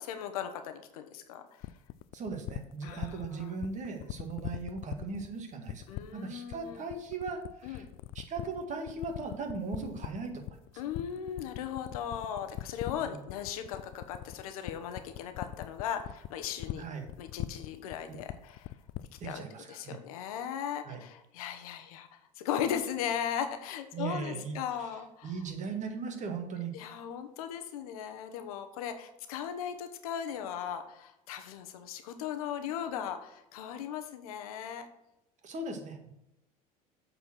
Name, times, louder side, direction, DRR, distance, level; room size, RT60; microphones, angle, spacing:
voice 1, 0.0-1.7 2.8-3.5 5.9-6.8 7.6-7.8 10.8-16.8 17.2-18.7 19.2-19.4 19.7-25.3 26.7-34.9, left 9 dB, 80° left, 7 dB, 1.1 m, -37 dB
sound 1, 1.6-19.4, left 16 dB, 55° left, 0.5 m, -40 dB
voice 2, 2.1-7.9 8.1-10.4 13.0-13.2 16.7-17.1 18.1-18.2 19.2-20.0 20.8-21.0 23.9-26.7 35.4-36.1, right 4 dB, 40° right, 4 dB, 1.8 m, -38 dB
7.9 x 4.5 x 6.0 m, 0.87 s
hypercardioid pair, 80°, 18 cm